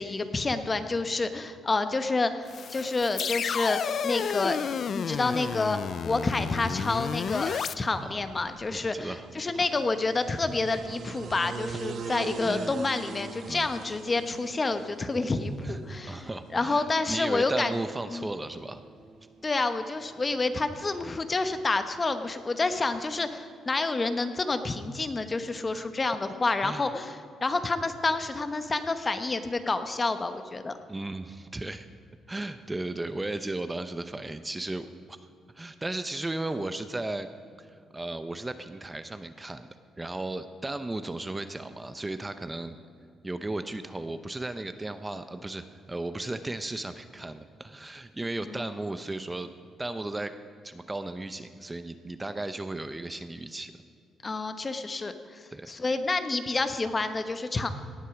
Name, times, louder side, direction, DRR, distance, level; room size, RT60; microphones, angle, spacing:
voice 1, 0.0-4.6 4.9-17.7 18.1-18.3 19.4-30.7 48.5-48.7 54.2-57.7, left 3 dB, 30° left, 9 dB, 0.9 m, -29 dB
sound 1, 2.5-7.7, left 7 dB, 55° left, 0.4 m, -31 dB
sound 2, 7.2-23.1, right 5 dB, 60° right, 1.1 m, -45 dB
voice 2, 8.7-9.3 9.5-9.7 12.4-12.7 13.5-13.7 15.6-15.8 16.1-18.8 25.7-25.9 26.6-26.9 30.9-31.9 32.3-35.2 35.5-37.3 37.6-37.7 37.9-39.7 40.0-42.8 43.2-49.5 49.8-50.4 50.6-53.7 55.5-55.7, right 2 dB, 15° right, 10 dB, 0.6 m, -35 dB
18.0 x 8.3 x 5.9 m, 2.4 s
cardioid pair, 90°, 0 cm